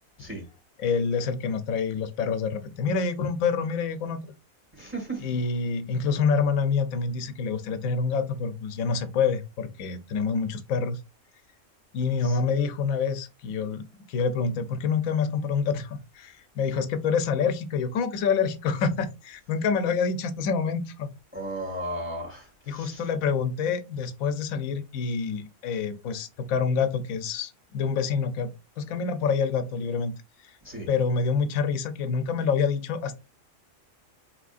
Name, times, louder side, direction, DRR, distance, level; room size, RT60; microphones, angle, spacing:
voice 1, 0.8-4.3 5.2-11.0 11.9-13.8 14.1-21.1 22.7-28.5 28.8-30.1 30.4-30.5 30.9-33.2, left 5 dB, 85° left, 1.0 m, -27 dB
voice 2, 4.7-5.3 12.2-12.4 21.3-23.0 30.6-30.9, right 1 dB, 10° right, 1.7 m, -35 dB
4.6 x 3.3 x 2.4 m
omnidirectional pair, 1.4 m